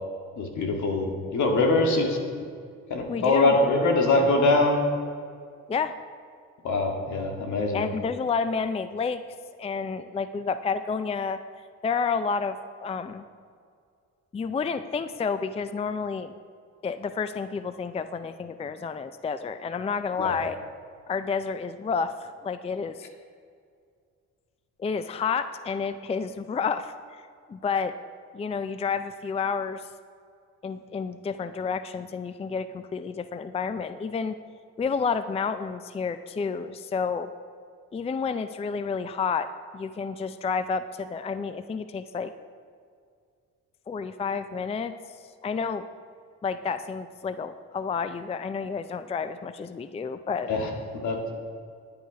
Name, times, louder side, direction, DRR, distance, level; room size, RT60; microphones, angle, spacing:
voice 1, 0.4-2.2 2.9-4.8 6.6-7.9 20.2-20.4 50.5-50.7 51.0-51.3, left 2 dB, 70° left, 2 dB, 2.0 m, -23 dB
voice 2, 3.1-3.5 5.7-5.9 7.7-9.2 9.6-11.4 11.8-13.2 14.3-16.3 16.8-20.6 21.1-23.1 24.8-27.2 27.5-27.9 28.3-29.9 30.6-34.4 34.8-37.3 37.9-39.5 39.7-42.3 43.9-45.8 46.4-50.5, left 5 dB, 20° left, 12 dB, 0.4 m, -30 dB
10.5 x 9.4 x 5.1 m, 2.2 s
cardioid pair, 90°, 30 cm